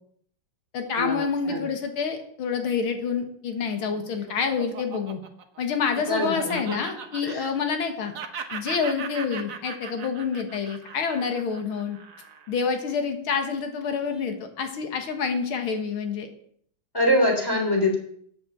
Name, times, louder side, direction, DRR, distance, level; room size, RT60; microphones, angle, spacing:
voice 1, 0.7-5.2 5.6-8.1 8.5-12.0 12.5-16.3, left 6 dB, 85° left, 6 dB, 2.2 m, -27 dB
Laughter, 3.6-7.9 8.1-12.6, right 7 dB, 50° right, 1.2 m, -38 dB
voice 2, 6.1-6.8 7.2-7.5 16.9-18.0, left 1 dB, 10° left, 0 dB, 3.2 m, -24 dB
9.2 x 8.0 x 7.6 m, 0.64 s
omnidirectional pair, 2.2 m